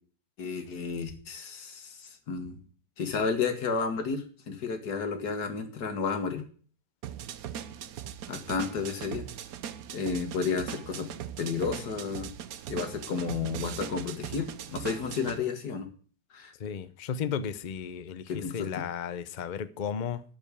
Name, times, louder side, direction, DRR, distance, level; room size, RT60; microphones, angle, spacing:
voice 1, 0.4-2.6 3.0-6.4 8.3-9.2 9.9-11.1 11.4-12.3 12.7-15.9 16.3-16.5 18.3-18.8, left 5 dB, 90° left, 2.1 m, -32 dB
sound 1, 7.0-15.4, right 9 dB, 70° right, 1.1 m, -40 dB
voice 2, 16.6-20.2, left 7 dB, 45° left, 0.6 m, -34 dB
12.0 x 5.3 x 8.4 m
omnidirectional pair, 1.7 m